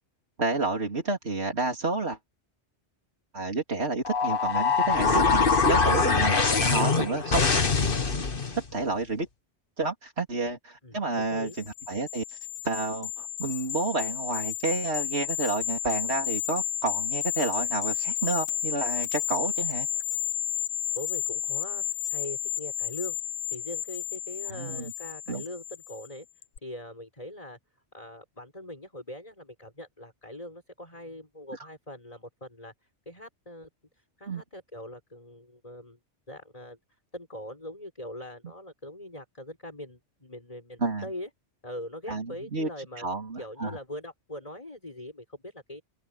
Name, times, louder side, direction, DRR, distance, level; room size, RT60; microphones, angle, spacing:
voice 1, 0.4-2.2 3.3-7.5 8.5-9.3 9.8-11.5 11.9-12.2 12.6-19.9 24.5-24.9 25.3-25.4 34.3-34.4 40.8-41.1 42.1-42.7 43.0-43.8, right 3 dB, 65° right, 3.8 m, -30 dB
sound 1, 4.0-8.6, left 4 dB, 50° left, 1.8 m, -23 dB
voice 2, 10.8-11.6 20.9-26.3 26.6-27.6 27.9-32.7 33.0-33.7 34.0-36.0 36.3-36.8 37.1-41.3 41.6-43.1 43.4-45.8, left 1 dB, 30° left, 6.5 m, -42 dB
sound 2, 11.5-26.1 26.4-26.6, left 11 dB, 80° left, 1.1 m, -32 dB
omnidirectional pair, 1.2 m